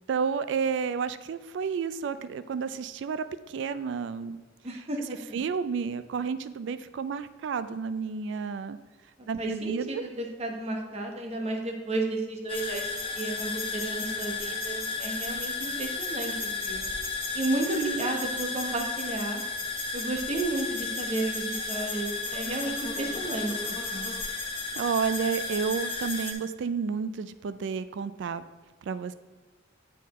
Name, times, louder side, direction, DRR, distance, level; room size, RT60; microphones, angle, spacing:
voice 1, 0.1-4.4 5.3-8.8 9.3-10.0 17.7-18.1 24.8-28.4 28.8-29.1, right 6 dB, 65° right, 13 dB, 0.3 m, -31 dB
voice 2, 4.6-5.4 9.2-16.9 17.3-19.4 19.9-23.5 23.9-24.1, right 2 dB, 35° right, 2 dB, 0.9 m, -32 dB
sound 1, 12.5-26.3, left 3 dB, 30° left, 0.8 m, -33 dB
8.2 x 4.2 x 4.1 m, 1.3 s
head